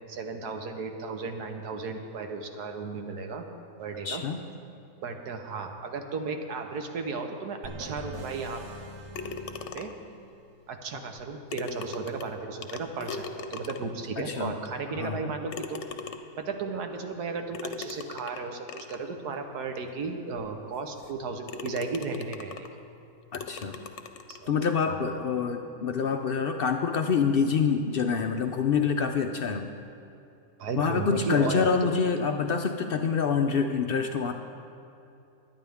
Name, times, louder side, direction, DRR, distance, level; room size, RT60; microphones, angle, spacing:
voice 1, 0.1-3.5 3.8-4.2 5.0-8.6 9.7-9.9 10.7-15.8 16.4-22.7 24.3-24.5 24.9-25.0 30.6-31.9, right 4 dB, 90° right, 5 dB, 1.5 m, -34 dB
voice 2, 4.0-4.4 14.2-14.6 14.9-15.3 23.3-23.8 24.5-29.7 30.8-34.3, left 6 dB, 75° left, 5 dB, 0.5 m, -26 dB
sound 1, 7.6-10.4, right 2 dB, 70° right, 1.6 m, -43 dB
sound 2, 9.1-10.1 11.2-11.3 11.5-14.1 14.7-14.8 15.5-16.5 17.5-19.1 19.8-19.9 20.4-20.5 21.0-21.2 21.5-22.8 23.3-24.5, left 4 dB, 55° left, 0.9 m, -39 dB
22.0 x 9.8 x 3.5 m, 2.7 s
omnidirectional pair, 1.7 m